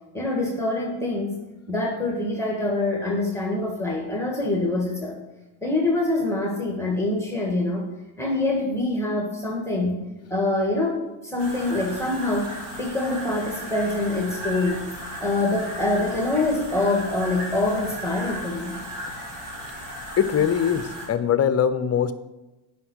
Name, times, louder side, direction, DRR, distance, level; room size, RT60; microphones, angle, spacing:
voice 1, 0.1-1.4 1.7-5.1 5.6-7.9 8.2-9.9 10.3-12.5 12.8-14.8 15.2-18.8, left 2 dB, 5° left, -1 dB, 1.8 m, -25 dB
sound 1, 11.4-21.1, equal, 55° right, 3.4 m, -36 dB
voice 2, 20.2-22.2, left 8 dB, 30° left, 12 dB, 0.7 m, -22 dB
9.6 x 5.9 x 6.3 m, 1.0 s
cardioid pair, 115°, 47 cm